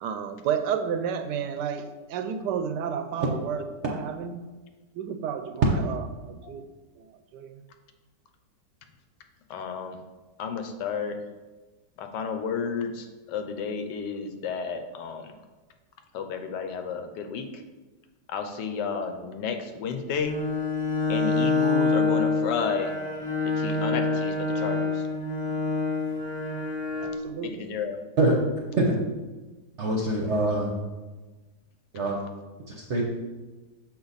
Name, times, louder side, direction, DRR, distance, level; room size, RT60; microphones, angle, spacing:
voice 1, 0.0-4.4 4.9-6.6 7.0-7.6 27.0-27.7, right 7 dB, 80° right, 9 dB, 1.2 m, -32 dB
voice 2, 9.5-10.0 10.4-11.2 12.0-15.3 16.1-17.6 18.3-20.4 21.1-23.0 23.4-25.1 27.5-28.0, left 6 dB, 80° left, 6 dB, 1.3 m, -32 dB
Bowed string instrument, 20.1-27.2, left 4 dB, 15° left, 1.4 m, -26 dB
voice 3, 29.8-30.7 31.9-32.2 32.7-33.0, right 2 dB, 55° right, -1 dB, 0.9 m, -24 dB
6.9 x 4.7 x 4.0 m, 1.2 s
omnidirectional pair, 1.9 m